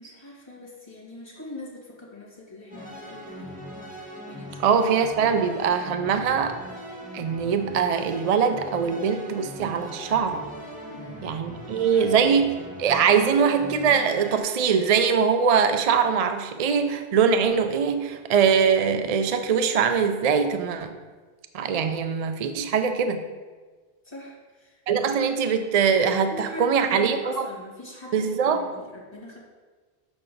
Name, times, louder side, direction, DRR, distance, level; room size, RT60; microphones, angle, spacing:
voice 1, 0.0-3.6 4.3-4.8 5.6-5.8 10.9-11.3 11.9-12.3 13.3-13.5 24.0-25.1 26.3-29.4, left 2 dB, 25° left, -5 dB, 2.3 m, -40 dB
sound 1, 2.7-14.4, equal, 10° right, 1.4 m, -40 dB
voice 2, 4.6-6.6 7.1-10.4 11.2-12.5 12.8-20.9 21.5-23.2 24.9-27.4 28.1-28.6, right 6 dB, 50° right, 8 dB, 0.4 m, -22 dB
6.7 x 6.2 x 3.9 m, 1.4 s
omnidirectional pair, 1.0 m